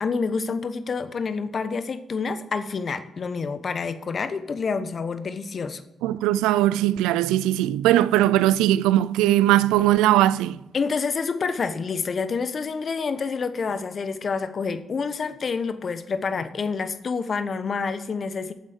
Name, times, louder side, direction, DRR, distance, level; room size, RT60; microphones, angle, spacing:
voice 1, 0.0-5.8 10.7-18.5, left 5 dB, 55° left, 1.1 m, -28 dB
voice 2, 6.0-10.6, right 14 dB, 85° right, 0.3 m, -20 dB
8.7 x 7.7 x 7.8 m
hypercardioid pair, 40°, 0 cm